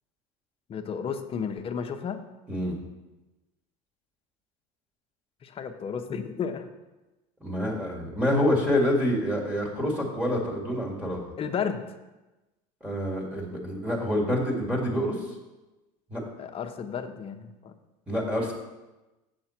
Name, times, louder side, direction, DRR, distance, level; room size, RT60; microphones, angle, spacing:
voice 1, 0.7-2.2 5.4-6.7 11.4-11.9 16.4-17.7, left 6 dB, 35° left, 7 dB, 0.8 m, -33 dB
voice 2, 7.4-11.2 12.8-15.3 16.1-16.2 18.1-18.5, left 1 dB, 5° right, -4 dB, 2.2 m, -27 dB
7.7 x 6.7 x 4.4 m, 1.1 s
supercardioid pair, 120°, 17 cm